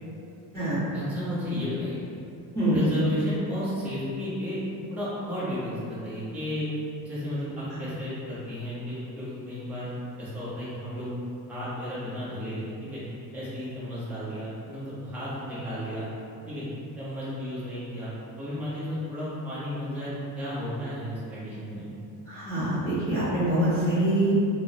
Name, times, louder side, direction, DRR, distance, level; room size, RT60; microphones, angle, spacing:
voice 1, 0.9-2.0 2.7-4.6 4.9-6.7 7.0-9.9 10.2-11.1 11.5-13.0 13.3-16.1 16.5-16.6 17.0-21.9, left 1 dB, 5° right, -11 dB, 0.6 m, -33 dB
voice 2, 22.3-24.3, right 1 dB, 10° left, -16 dB, 1.0 m, -25 dB
2.4 x 2.0 x 3.8 m, 2.7 s
cardioid pair, 155°, 37 cm